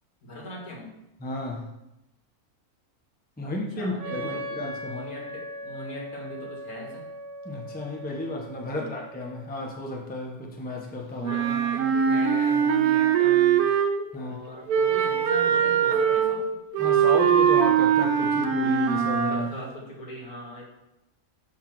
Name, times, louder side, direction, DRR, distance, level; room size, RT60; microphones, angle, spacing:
voice 1, 0.2-0.9 3.4-4.4 4.8-7.0 8.7-8.9 11.2-13.7 14.1-16.4 19.3-20.6, left 1 dB, 80° left, -2 dB, 2.2 m, -39 dB
voice 2, 1.2-1.7 3.4-5.0 7.4-11.4 14.1-14.4 16.8-19.5, left 2 dB, 10° left, 0 dB, 0.7 m, -33 dB
Wind instrument woodwind instrument, 4.0-9.6, equal, 55° right, 1.3 m, -39 dB
Wind instrument woodwind instrument 2, 11.2-14.1 14.7-19.5, right 8 dB, 85° right, 1.2 m, -22 dB
6.7 x 4.0 x 5.9 m, 0.91 s
omnidirectional pair, 1.5 m